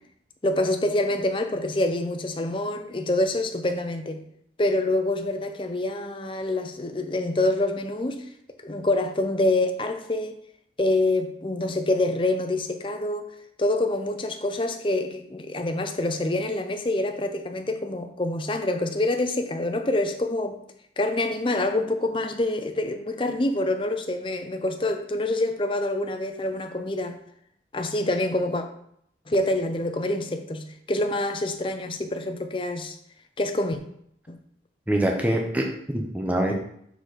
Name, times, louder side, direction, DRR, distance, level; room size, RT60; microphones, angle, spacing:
voice 1, 0.4-4.2 4.6-8.2 8.6-10.3 10.8-13.3 13.6-20.6 21.0-27.2 27.7-28.6 29.3-33.0 33.4-33.8 34.3-34.4, left 1 dB, 30° left, 6 dB, 0.6 m, -26 dB
voice 2, 34.9-36.5, right 1 dB, 10° right, 1 dB, 0.7 m, -24 dB
6.3 x 3.9 x 4.9 m, 0.71 s
head